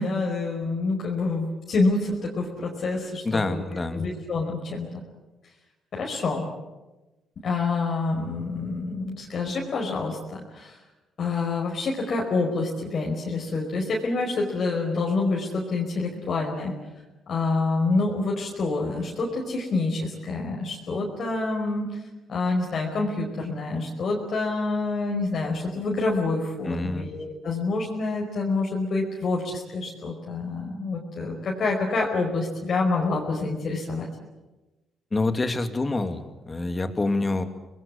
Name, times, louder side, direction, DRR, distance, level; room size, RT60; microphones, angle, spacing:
voice 1, 0.0-3.6 3.9-4.9 5.9-6.5 7.4-10.8 11.2-16.7 17.3-21.9 22.3-34.1, left 3 dB, 55° left, -1 dB, 5.1 m, -27 dB
voice 2, 3.2-4.0 26.6-27.1 35.1-37.4, left 2 dB, 25° left, 8 dB, 2.5 m, -27 dB
26.5 x 20.0 x 8.7 m, 1.1 s
cardioid pair, 90°, 0 cm